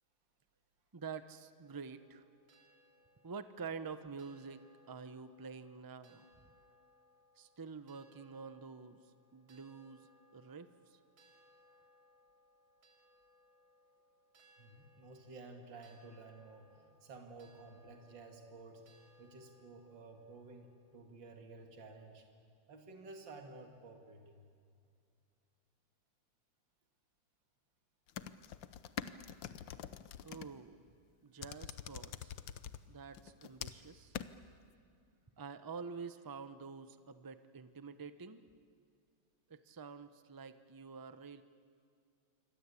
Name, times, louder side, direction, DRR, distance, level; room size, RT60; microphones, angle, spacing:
voice 1, 0.9-2.2 3.2-6.3 7.4-11.0 30.2-30.8 31.2-32.3 32.9-34.2 35.4-38.4 39.5-41.4, right 5 dB, 30° right, 11 dB, 0.3 m, -48 dB
sound 1, 1.6-21.0, equal, 85° right, 3.9 m, -68 dB
voice 2, 14.6-22.3 22.7-24.4, right 3 dB, 65° right, 4 dB, 2.8 m, -53 dB
sound 2, 28.1-30.5 31.4-32.8 33.1-33.9 34.1-34.3, left 10 dB, 75° left, 1.6 m, -44 dB
27.0 x 24.5 x 8.4 m, 2.4 s
omnidirectional pair, 2.1 m